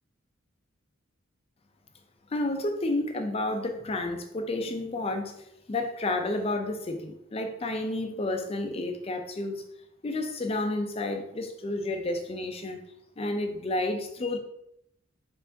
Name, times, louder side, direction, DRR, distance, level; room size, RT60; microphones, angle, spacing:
voice 1, 2.3-5.4 5.7-9.6 10.0-12.8 13.2-14.4, left 2 dB, 30° left, 5 dB, 0.4 m, -30 dB
4.4 x 3.3 x 2.7 m, 0.77 s
head